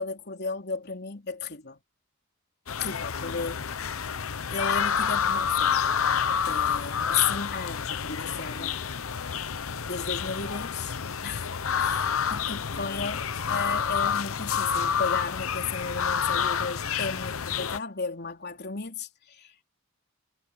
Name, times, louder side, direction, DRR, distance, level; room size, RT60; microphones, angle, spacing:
voice 1, 0.0-1.8 2.8-3.6 4.5-5.8 6.5-8.8 9.9-19.6, left 5 dB, 55° left, 3.6 m, -34 dB
sound 1, 2.7-17.8, left 7 dB, 90° left, 0.9 m, -28 dB
head